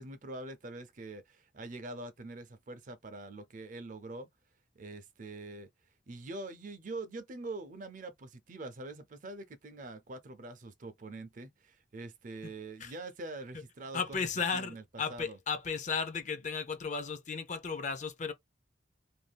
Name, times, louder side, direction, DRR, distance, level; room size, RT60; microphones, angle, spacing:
voice 1, 0.0-4.3 4.8-5.7 6.1-14.8 15.1-15.4, right 2 dB, 45° right, 0.5 m, -44 dB
voice 2, 13.9-18.3, left 5 dB, 40° left, 0.5 m, -35 dB
2.6 x 2.3 x 3.3 m
head